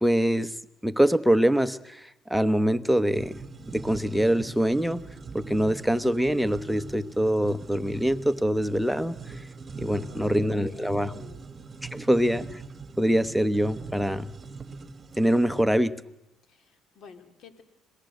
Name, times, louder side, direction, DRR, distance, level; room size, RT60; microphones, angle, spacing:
voice 1, 0.0-0.5 0.8-3.4 3.7-5.0 5.3-9.2 9.8-11.1 11.9-12.4 13.0-14.3 15.2-16.0, equal, ahead, 11 dB, 1.0 m, -24 dB
sound 1, 3.1-15.7, right 4 dB, 30° right, 1.4 m, -42 dB
voice 2, 9.8-11.4 11.9-12.1 16.5-17.6, left 6 dB, 55° left, 7 dB, 3.1 m, -50 dB
26.5 x 18.5 x 7.9 m, 0.89 s
cardioid pair, 95°, 0 cm